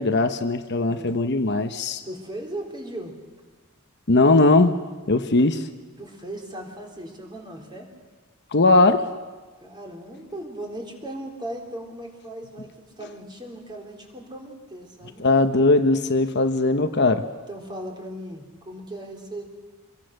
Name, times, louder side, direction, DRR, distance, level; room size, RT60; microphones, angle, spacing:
voice 1, 0.0-2.0 4.1-4.8 5.1-5.7 8.5-9.1 15.2-17.3, left 2 dB, 55° left, 7 dB, 1.0 m, -19 dB
voice 2, 0.8-1.2 2.0-3.1 6.0-7.9 9.6-12.7 13.0-15.2 17.5-19.5, right 1 dB, 20° right, 1 dB, 3.7 m, -37 dB
25.5 x 22.0 x 6.6 m, 1.3 s
head